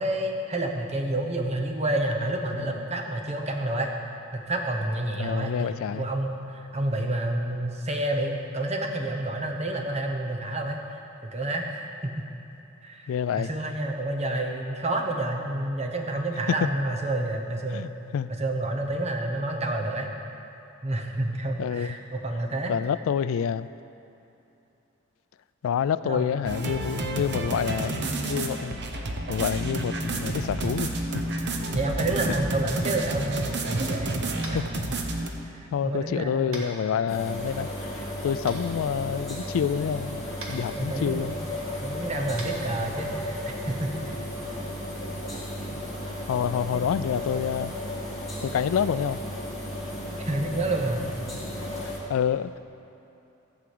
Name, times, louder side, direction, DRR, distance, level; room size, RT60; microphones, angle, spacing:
voice 1, 0.0-3.9 4.3-10.8 11.2-12.1 12.8-17.9 18.3-20.1 20.8-22.7 26.0-26.3 31.7-34.6 35.5-36.7 40.8-41.4 41.8-43.9 46.7-46.9 50.3-51.0, right 1 dB, 30° right, 2 dB, 1.1 m, -29 dB
voice 2, 5.2-6.1 13.1-13.5 17.7-17.9 18.1-18.3 21.6-21.9 22.7-23.7 25.6-28.8 29.3-30.9 34.5-34.6 35.7-38.0 38.2-40.2 40.5-41.3 46.3-47.7 48.5-49.2 52.1-52.6, left 8 dB, 75° left, 15 dB, 0.3 m, -27 dB
sound 1, 26.4-35.3, right 2 dB, 55° right, 1.0 m, -30 dB
Tap, 34.4-34.7 36.5-36.7 38.5-38.6 40.4-40.5 42.3-42.5, right 2 dB, 90° right, 1.7 m, -38 dB
sound 2, 37.1-52.0, equal, ahead, 2.7 m, -34 dB
14.5 x 4.9 x 7.8 m, 2.9 s
head